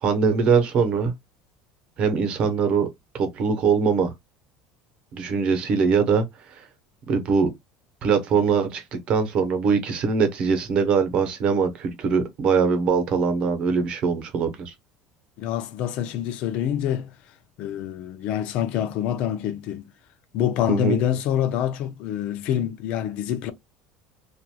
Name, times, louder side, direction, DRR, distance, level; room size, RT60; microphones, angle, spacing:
voice 1, 0.0-1.1 2.0-2.9 3.1-4.1 5.1-6.6 7.1-7.5 8.0-14.7 20.7-21.0, right 5 dB, 45° right, 0.9 m, -22 dB
voice 2, 15.4-17.1 17.6-19.8 20.3-23.5, left 10 dB, 55° left, 0.5 m, -26 dB
3.0 x 2.5 x 2.2 m
supercardioid pair, 130°, 2 cm